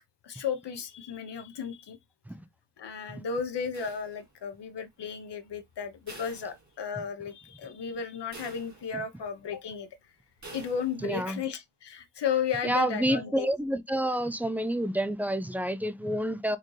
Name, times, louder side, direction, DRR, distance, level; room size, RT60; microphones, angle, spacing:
voice 1, 0.2-2.0 2.8-9.9 10.5-13.5, left 7 dB, 85° left, 1.0 m, -34 dB
sound 1, 3.7-4.6 6.1-7.2 7.6-7.7 8.3-9.2 10.4-11.2, right 2 dB, 45° right, 1.8 m, -48 dB
voice 2, 11.0-11.4 12.6-16.6, right 1 dB, 5° right, 0.4 m, -29 dB
4.3 x 3.8 x 3.1 m
wide cardioid pair, 175°, 41 cm